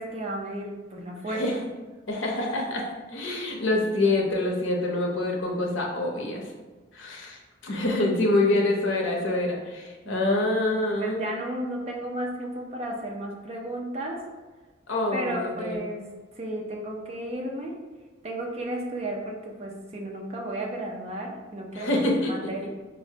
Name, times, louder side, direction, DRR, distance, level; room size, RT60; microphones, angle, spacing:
voice 1, 0.0-1.7 10.0-10.4 11.0-14.2 15.1-16.0 16.4-17.7 18.2-22.7, right 1 dB, 30° right, 0 dB, 0.5 m, -33 dB
voice 2, 2.1-6.4 6.9-11.2 14.9-15.8 21.7-22.3, left 2 dB, 75° left, 0 dB, 0.6 m, -26 dB
4.1 x 2.0 x 2.7 m, 1.3 s
head